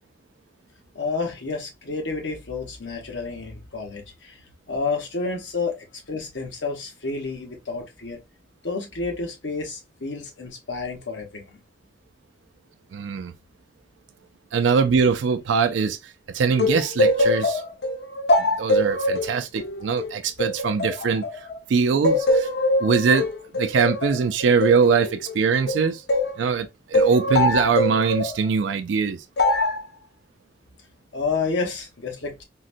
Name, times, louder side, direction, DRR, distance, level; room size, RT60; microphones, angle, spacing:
voice 1, 0.9-4.4 4.7-5.8 6.1-8.2 8.6-11.6 31.1-32.4, left 4 dB, 85° left, 0.9 m, -30 dB
voice 2, 12.9-13.3 14.5-16.0 16.3-17.6 18.4-21.2 21.7-22.5 22.8-23.3 23.6-26.0 26.4-29.2, right 5 dB, 85° right, 0.4 m, -22 dB
sound 1, 16.6-21.6 22.0-26.4 26.9-28.4 29.4-29.8, left 1 dB, 60° left, 0.6 m, -23 dB
3.8 x 2.1 x 2.5 m
head